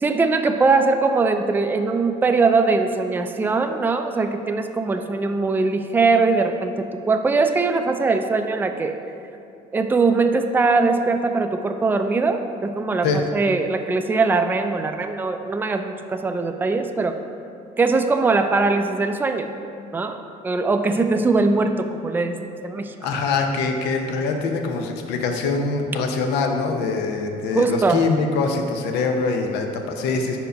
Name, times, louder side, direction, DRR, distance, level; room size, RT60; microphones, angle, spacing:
voice 1, 0.0-9.0 9.7-17.2 17.8-19.5 19.9-20.2 20.4-22.9 27.5-28.0, right 3 dB, 10° right, 6 dB, 0.3 m, -21 dB
voice 2, 23.0-30.4, left 4 dB, 85° left, 4 dB, 0.7 m, -23 dB
5.1 x 4.6 x 5.1 m, 2.7 s
cardioid pair, 110°, 17 cm